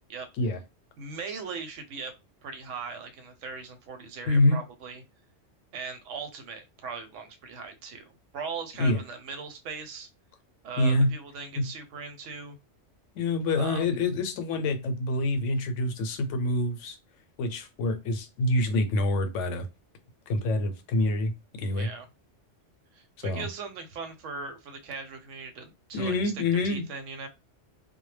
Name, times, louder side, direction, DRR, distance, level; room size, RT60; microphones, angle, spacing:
voice 1, 1.0-2.1 2.4-5.0 5.7-10.1 10.6-12.6 13.6-13.9 21.7-22.1 22.9-26.2 26.6-27.3, right 5 dB, 85° right, 1.0 m, -39 dB
voice 2, 4.3-4.6 8.8-9.0 10.8-11.1 11.6-11.7 13.2-17.0 17.4-19.7 20.3-21.9 23.2-23.4 25.9-26.8, left 2 dB, 85° left, 0.9 m, -26 dB
2.2 x 2.0 x 3.1 m
omnidirectional pair, 1.2 m